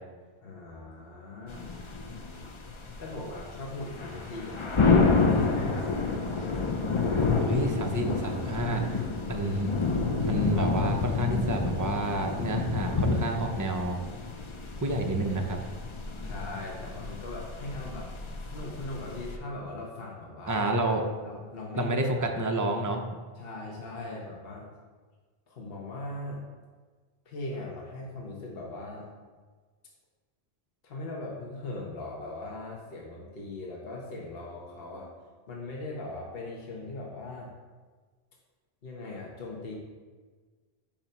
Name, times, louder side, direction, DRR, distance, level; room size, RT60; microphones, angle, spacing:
voice 1, 0.4-1.7 2.1-2.3 3.0-6.5 16.2-18.1 18.5-20.6 21.2-22.2 23.4-24.7 25.5-26.4 27.2-29.1 30.8-35.1 35.5-37.5 38.8-39.7, left 2 dB, 65° left, -3 dB, 1.2 m, -40 dB
sound 1, 1.5-19.4, left 4 dB, 40° left, 0.5 m, -29 dB
voice 2, 7.4-8.8 9.3-9.7 10.2-14.0 14.8-15.6 20.5-21.0 21.8-23.0, right 1 dB, 20° right, 3 dB, 0.6 m, -29 dB
8.8 x 3.0 x 5.4 m, 1.4 s
omnidirectional pair, 1.1 m